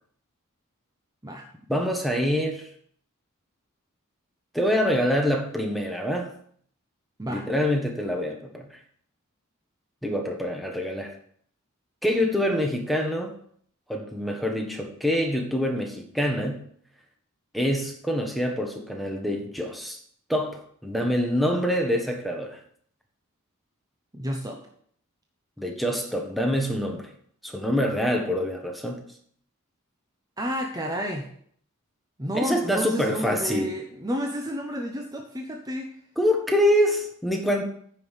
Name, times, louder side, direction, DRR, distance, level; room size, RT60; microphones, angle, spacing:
voice 1, 1.7-2.7 4.5-6.3 7.2-8.7 10.0-11.1 12.0-13.3 13.9-16.6 17.5-20.0 20.3-22.6 25.6-27.1 27.4-29.0 32.3-33.7 36.2-37.6, equal, ahead, 2 dB, 1.3 m, -25 dB
voice 2, 24.1-24.6 30.4-31.3 32.2-35.9, equal, 15° right, 2 dB, 0.9 m, -31 dB
9.4 x 5.5 x 6.5 m, 0.62 s
head